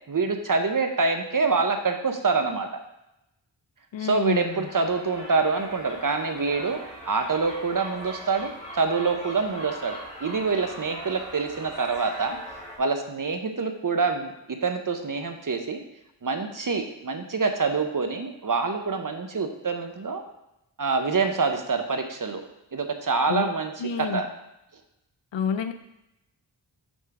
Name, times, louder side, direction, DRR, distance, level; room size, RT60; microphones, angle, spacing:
voice 1, 0.1-2.7 4.0-6.8 7.1-12.4 12.8-15.8 16.2-20.2 20.8-22.4 22.7-23.7 24.0-24.3, right 4 dB, 45° right, 5 dB, 0.7 m, -26 dB
voice 2, 3.9-4.7 23.3-23.5 23.8-24.3 25.3-25.7, left 7 dB, 85° left, 10 dB, 0.6 m, -28 dB
sound 1, 4.5-12.8, equal, 15° left, 2.0 m, -40 dB
6.2 x 3.6 x 5.8 m, 0.87 s
wide cardioid pair, 70°, 44 cm